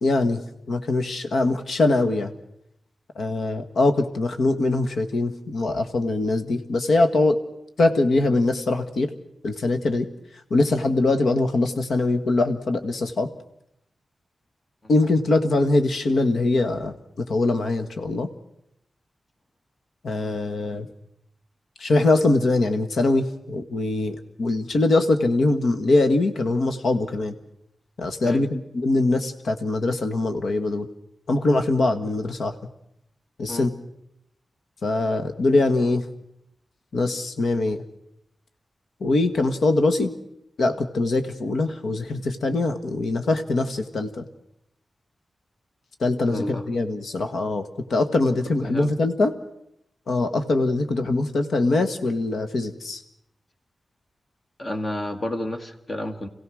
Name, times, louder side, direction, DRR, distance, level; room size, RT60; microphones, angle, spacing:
voice 1, 0.0-0.4 0.7-2.3 3.1-7.4 7.8-9.1 9.4-10.1 10.5-13.3 14.9-18.3 20.0-20.9 21.8-27.3 28.0-30.9 31.3-32.5 33.4-33.7 34.8-36.0 36.9-37.8 39.0-40.1 40.6-44.2 46.0-49.3 50.1-53.0, left 2 dB, 85° left, 6 dB, 1.5 m, -22 dB
voice 2, 46.3-46.6 48.5-48.9 54.6-56.3, left 1 dB, 35° left, 7 dB, 1.7 m, -31 dB
27.0 x 16.5 x 6.3 m, 0.80 s
wide cardioid pair, 130°, 0 cm